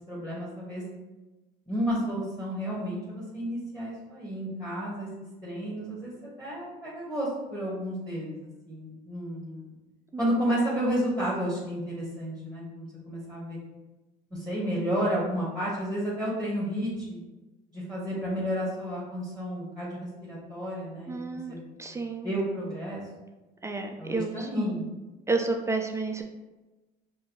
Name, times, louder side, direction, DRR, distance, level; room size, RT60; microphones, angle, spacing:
voice 1, 0.1-0.8 1.7-5.1 5.4-6.1 6.4-9.7 10.2-13.6 14.3-17.2 17.7-21.6 22.2-23.0 24.0-24.9, equal, 5° left, -6 dB, 1.5 m, -31 dB
voice 2, 21.1-22.4 23.6-24.7 25.3-26.2, right 3 dB, 15° right, 3 dB, 0.4 m, -31 dB
4.6 x 2.7 x 3.1 m, 1.1 s
supercardioid pair, 100°, 18 cm